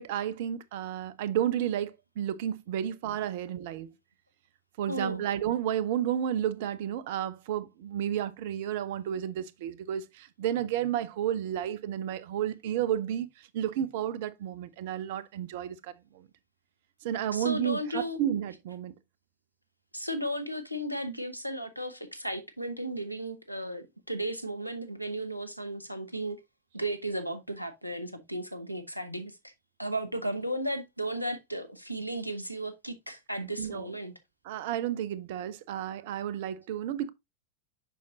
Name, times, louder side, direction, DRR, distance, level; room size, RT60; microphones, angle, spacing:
voice 1, 0.0-3.9 4.8-16.3 17.0-18.9 33.6-33.9 34.4-37.1, right 10 dB, 50° right, 0.6 m, -32 dB
voice 2, 4.9-5.3 17.3-18.2 19.9-26.4 26.7-29.5 29.8-34.1, right 1 dB, 90° left, 0.9 m, -35 dB
7.1 x 5.8 x 2.7 m
figure-of-eight pair, 90°, 0 cm